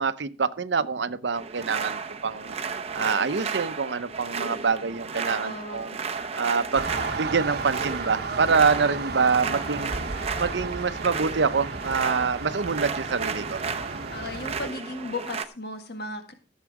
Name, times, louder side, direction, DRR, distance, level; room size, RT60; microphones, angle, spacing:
voice 1, 0.0-2.6 2.9-6.0 6.3-6.9 7.2-9.9 10.4-13.6, right 5 dB, 80° right, 13 dB, 0.7 m, -25 dB
sound 1, 1.3-15.5, right 5 dB, 35° right, 0.9 m, -34 dB
voice 2, 5.3-6.0 9.3-9.8 14.1-16.3, left 2 dB, 60° left, 6 dB, 1.7 m, -36 dB
sound 2, 6.7-14.7, right 3 dB, 60° right, 1.1 m, -33 dB
14.5 x 7.4 x 4.7 m, 0.35 s
head